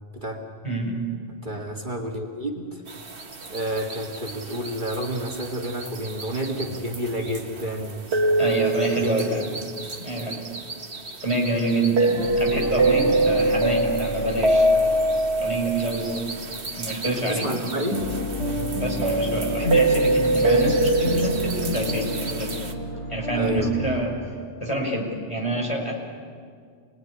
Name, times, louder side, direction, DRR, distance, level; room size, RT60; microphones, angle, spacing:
voice 1, 0.6-1.0 8.4-9.5 10.0-10.4 11.2-14.7 15.4-16.3 16.8-17.5 18.8-22.5 23.1-24.2 24.6-25.9, right 1 dB, 25° left, -1 dB, 5.4 m, -26 dB
voice 2, 1.4-2.8 3.5-8.0 8.9-9.1 13.0-13.1 17.0-18.1 23.3-23.7, equal, 45° right, 0 dB, 2.3 m, -30 dB
sound 1, 2.9-22.7, right 2 dB, 65° right, 1.9 m, -25 dB
sound 2, 12.2-17.4 17.7-24.0, equal, 80° left, 3.8 m, -32 dB
28.5 x 20.0 x 9.9 m, 2.1 s
omnidirectional pair, 1.2 m